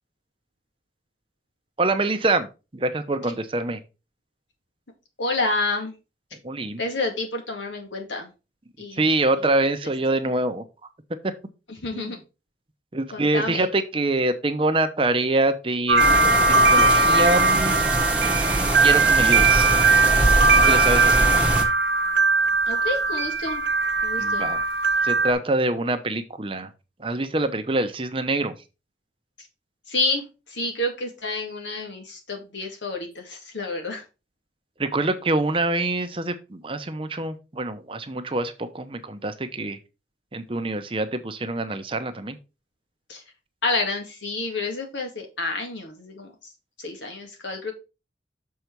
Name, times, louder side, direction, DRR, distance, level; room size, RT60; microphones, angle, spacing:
voice 1, 1.8-2.5 2.7-3.8 6.4-6.8 8.9-10.6 11.2-11.3 11.9-12.1 12.9-16.0 16.5-17.8 18.8-19.7 20.7-21.3 24.2-24.7 25.0-26.7 27.0-28.5 34.8-39.8 40.3-42.4, right 2 dB, 30° right, 9 dB, 0.8 m, -25 dB
voice 2, 5.2-6.0 6.8-8.3 8.8-9.1 11.7-12.2 13.1-13.7 22.7-23.6 24.0-24.5 29.9-34.0 43.1-43.2 43.6-46.5 46.8-47.7, left 2 dB, 90° left, 3 dB, 2.2 m, -29 dB
sound 1, 15.9-25.3, right 3 dB, 70° right, 0.7 m, -20 dB
sound 2, 16.0-21.6, right 2 dB, 5° right, 1.1 m, -24 dB
6.8 x 4.7 x 4.6 m, 0.29 s
head